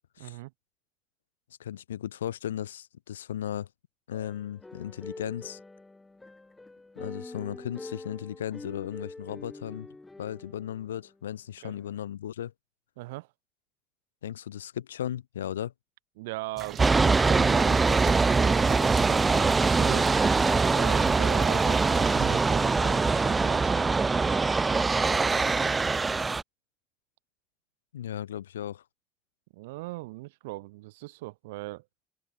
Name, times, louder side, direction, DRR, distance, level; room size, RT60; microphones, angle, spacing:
voice 1, 0.2-0.5 11.6-11.7 13.0-13.3 16.2-20.2 20.7-23.8 29.5-31.8, right 21 dB, 70° right, 2.1 m, -40 dB
voice 2, 1.6-3.7 4.1-5.6 7.0-9.9 10.2-12.5 14.2-15.7 27.9-28.8, left 10 dB, 80° left, 0.6 m, -36 dB
sound 1, 4.1-11.1 11.7-12.0, left 2 dB, 15° left, 2.1 m, -45 dB
sound 2, 16.6-23.5, right 9 dB, 50° right, 0.9 m, -40 dB
sound 3, 16.8-26.4, right 4 dB, 25° right, 0.4 m, -23 dB
figure-of-eight pair, 50°, 0 cm